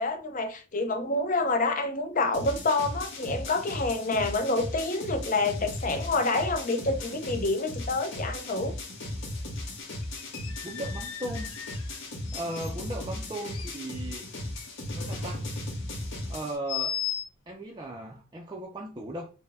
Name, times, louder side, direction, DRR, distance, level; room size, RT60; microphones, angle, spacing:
voice 1, 0.0-8.7, left 2 dB, 40° left, 0.6 m, -28 dB
sound 1, 2.3-16.6, left 1 dB, 55° left, 1.2 m, -36 dB
sound 2, 5.8-5.9 6.3-6.4 7.0-7.3 7.6-7.7 9.3-9.4 10.0-12.7 13.3-14.7 14.9-15.4 16.7-17.3, left 10 dB, 85° left, 0.6 m, -37 dB
voice 2, 10.6-11.5 12.3-14.3 14.9-15.5 16.3-17.0 17.5-19.3, right 1 dB, 20° right, 0.4 m, -37 dB
4.4 x 2.2 x 3.5 m
head